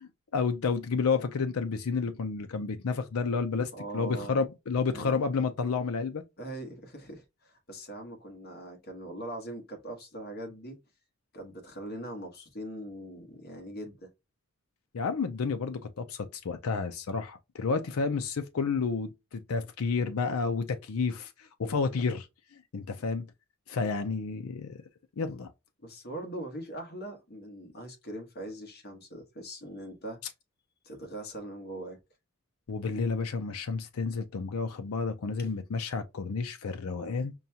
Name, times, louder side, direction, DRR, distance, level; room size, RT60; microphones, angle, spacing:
voice 1, 0.0-6.2 14.9-22.3 22.5-23.3 23.7-24.8 25.2-25.5 32.7-37.3, left 4 dB, 90° left, 0.5 m, -31 dB
voice 2, 3.7-4.4 4.9-5.2 6.4-10.8 11.3-14.1 25.8-30.2 30.8-32.0 35.4-35.5, right 1 dB, 50° left, 1.4 m, -41 dB
5.3 x 2.3 x 2.7 m
head